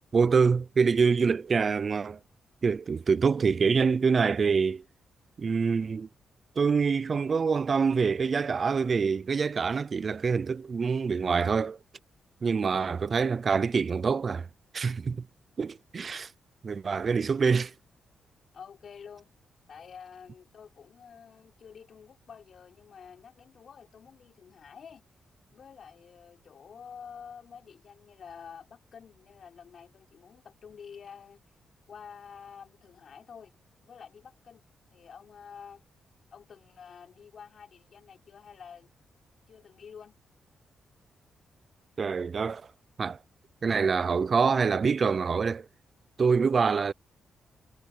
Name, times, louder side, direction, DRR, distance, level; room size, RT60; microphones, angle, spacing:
voice 1, 0.1-2.2 2.6-4.8 5.4-6.1 6.6-11.8 12.4-14.5 14.7-15.2 15.6-16.3 16.6-17.7 42.0-42.6 43.0-43.2 43.6-45.7 46.2-46.9, right 5 dB, 35° right, 0.4 m, -25 dB
voice 2, 18.5-19.3 19.7-25.0 25.5-31.4 31.9-33.5 33.8-34.6 34.9-35.8 36.3-39.0 39.5-40.2, left 7 dB, 45° left, 4.4 m, -49 dB
wide cardioid pair, 175°, 0 cm